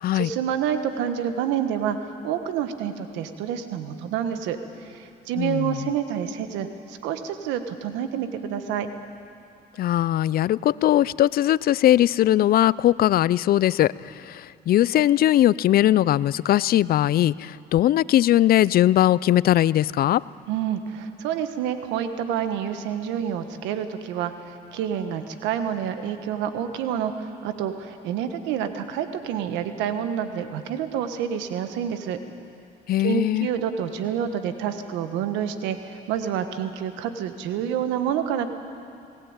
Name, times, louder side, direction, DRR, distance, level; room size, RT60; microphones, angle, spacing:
voice 1, 0.1-4.6 4.8-8.9 20.5-32.2 33.0-38.5, right 9 dB, 85° right, 8 dB, 1.4 m, -28 dB
voice 2, 5.4-5.9 9.8-20.2 32.9-33.5, left 13 dB, 55° left, 20 dB, 0.5 m, -20 dB
20.5 x 18.0 x 8.9 m, 2.5 s
supercardioid pair, 80°, 18 cm